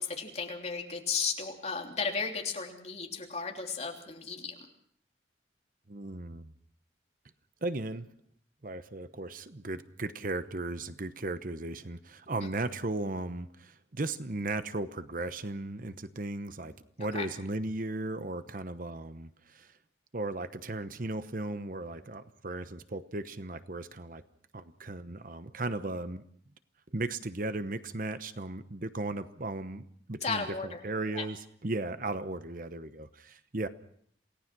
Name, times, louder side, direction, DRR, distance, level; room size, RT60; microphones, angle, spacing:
voice 1, 0.0-4.6 12.4-12.5 17.1-17.3 30.2-30.8 31.1-31.2, left 5 dB, 35° left, 2 dB, 3.2 m, -34 dB
voice 2, 5.9-6.5 7.6-8.1 8.6-19.7 20.1-24.2 24.5-26.2 26.9-33.7, right 2 dB, 50° right, 11 dB, 1.0 m, -36 dB
28.0 x 18.0 x 6.1 m, 0.65 s
head